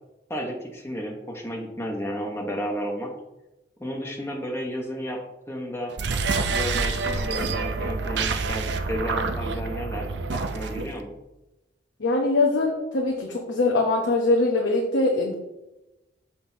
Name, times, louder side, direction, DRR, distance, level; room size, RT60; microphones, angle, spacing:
voice 1, 0.3-3.1 3.8-5.2 5.5-5.9 6.5-10.1 10.3-11.1, equal, 15° left, 0 dB, 0.9 m, -32 dB
sound 1, 5.9-11.0, right 4 dB, 70° right, 0.5 m, -27 dB
voice 2, 12.0-15.3, left 2 dB, 85° left, 0 dB, 0.8 m, -22 dB
6.6 x 5.6 x 2.7 m, 0.97 s
head